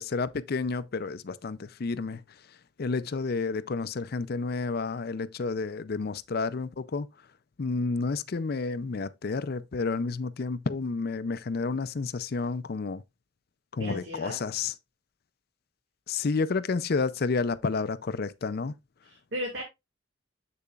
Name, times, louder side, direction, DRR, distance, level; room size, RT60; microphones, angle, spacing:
voice 1, 0.0-2.2 2.8-7.1 7.6-13.0 13.7-14.7 16.1-18.7, left 4 dB, 55° left, 0.5 m, -30 dB
voice 2, 13.8-14.4 19.0-19.6, equal, 80° right, 2.1 m, -35 dB
7.7 x 6.8 x 2.4 m
head